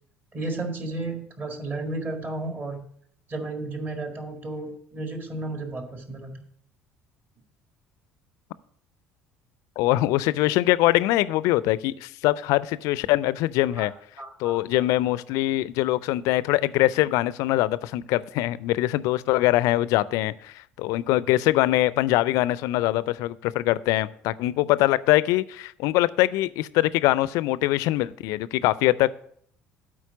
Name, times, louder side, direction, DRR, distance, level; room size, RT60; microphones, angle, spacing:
voice 1, 0.3-2.8 3.3-6.4 13.8-13.9 14.2-14.6, right 2 dB, 30° right, 5 dB, 1.8 m, -33 dB
voice 2, 9.8-13.9 14.4-29.1, left 16 dB, 60° left, 18 dB, 0.4 m, -23 dB
8.5 x 4.4 x 6.8 m, 0.63 s
figure-of-eight pair, 60°, 6 cm